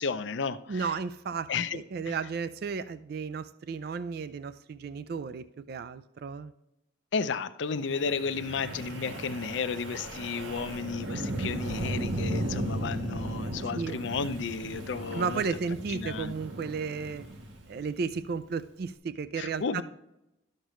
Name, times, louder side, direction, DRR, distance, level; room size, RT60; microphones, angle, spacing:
voice 1, 0.0-0.9 1.5-1.8 2.1-2.2 7.1-15.4 15.9-16.3 19.4-19.8, left 5 dB, 75° left, 0.5 m, -33 dB
voice 2, 0.7-6.5 13.7-14.0 15.1-17.2 17.7-19.8, right 5 dB, 55° right, 0.3 m, -34 dB
Wind, 7.9-18.2, right 1 dB, 90° right, 1.4 m, -36 dB
12.0 x 6.5 x 3.1 m
head